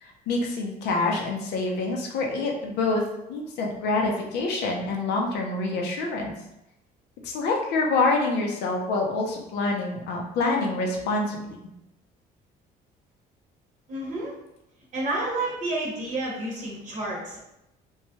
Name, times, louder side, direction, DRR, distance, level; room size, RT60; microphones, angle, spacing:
voice 1, 0.0-3.0 3.3-6.3 7.2-11.6, left 3 dB, 80° left, 0 dB, 0.6 m, -26 dB
voice 2, 13.9-14.3 14.9-17.4, right 2 dB, 45° right, -3 dB, 0.8 m, -30 dB
3.1 x 2.2 x 2.9 m, 0.88 s
cardioid pair, 110°, 17 cm